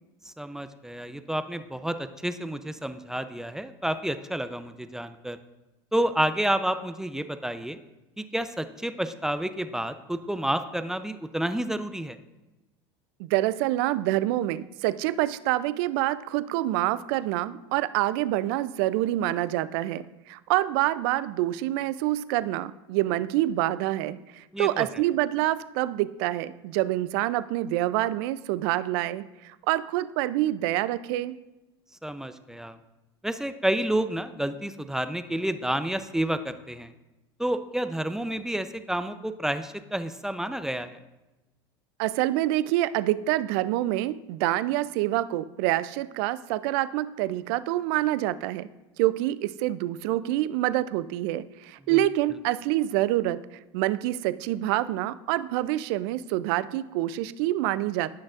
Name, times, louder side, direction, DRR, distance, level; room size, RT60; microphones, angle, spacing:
voice 1, 0.2-5.4 5.9-7.8 8.2-12.2 24.5-24.9 32.0-32.8 33.2-36.9 37.4-41.0 51.9-52.1, right 1 dB, 5° right, 10 dB, 0.5 m, -30 dB
voice 2, 13.2-31.3 42.0-48.7 49.0-53.4 53.7-58.1, right 15 dB, 65° right, 15 dB, 0.4 m, -26 dB
16.0 x 6.2 x 2.5 m, 1.0 s
hypercardioid pair, 90°, 14 cm